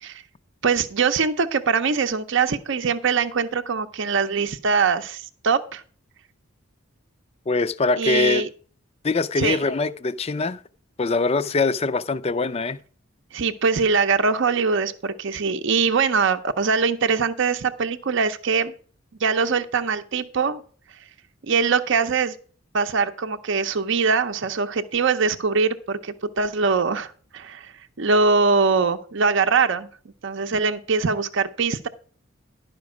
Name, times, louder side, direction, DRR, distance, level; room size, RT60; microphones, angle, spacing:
voice 1, 0.6-5.8 8.0-8.5 9.4-9.6 13.3-18.7 19.2-20.6 21.4-22.3 22.7-27.7 28.0-29.9 30.2-31.9, right 5 dB, 60° right, 0.6 m, -22 dB
voice 2, 7.5-8.5 9.0-10.6 11.0-12.8, left 3 dB, 30° left, 0.4 m, -23 dB
11.5 x 5.2 x 6.0 m
head